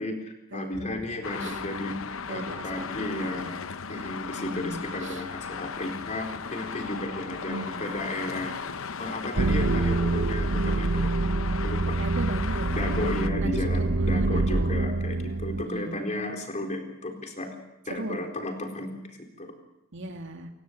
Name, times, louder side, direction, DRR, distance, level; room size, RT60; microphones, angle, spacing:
voice 1, 0.0-1.9 2.3-3.5 3.9-8.5 9.0-11.1 11.6-12.0 12.8-17.5 17.9-19.5, left 1 dB, 35° left, 3 dB, 4.2 m, -34 dB
voice 2, 0.5-1.0 1.4-1.6 2.3-3.5 4.3-5.2 7.5-7.9 12.0-12.7 13.4-14.7 15.6-16.0 17.9-18.2 19.9-20.5, right 2 dB, 60° right, 4 dB, 2.7 m, -37 dB
Traffic noise roadway noise, 1.2-13.3, left 6 dB, 65° left, 0.8 m, -37 dB
sound 1, 9.4-15.6, right 2 dB, 75° right, 1.0 m, -26 dB
29.5 x 17.0 x 8.1 m, 0.93 s
head